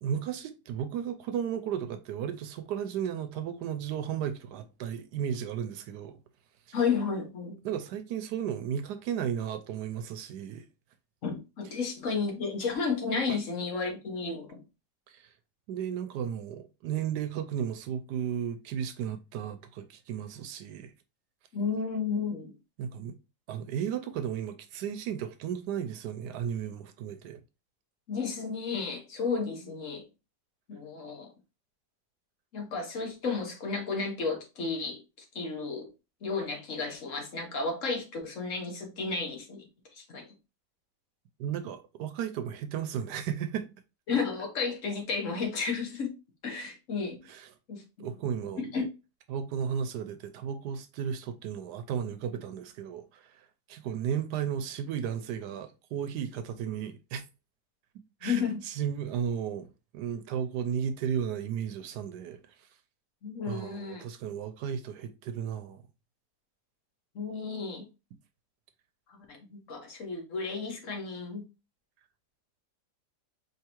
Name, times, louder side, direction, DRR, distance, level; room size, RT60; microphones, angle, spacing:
voice 1, 0.0-6.2 6.7-6.8 7.6-10.6 13.3-13.4 15.1-15.3 15.7-20.9 22.8-23.2 23.5-27.4 41.4-43.7 47.3-47.5 48.0-48.6 49.3-57.2 58.2-59.7 59.9-62.4 63.5-65.8, right 8 dB, 80° right, 1.1 m, -34 dB
voice 2, 6.7-7.6 11.2-14.6 21.5-22.5 28.1-30.0 30.7-31.3 32.5-35.0 35.3-35.9 36.2-39.7 39.9-40.3 44.1-46.1 46.4-47.2 47.7-48.1 48.7-48.9 58.2-58.6 63.2-64.0 67.1-67.9 69.1-69.2 69.5-71.4, left 5 dB, 50° left, 1.4 m, -32 dB
4.6 x 3.3 x 2.9 m
omnidirectional pair, 1.8 m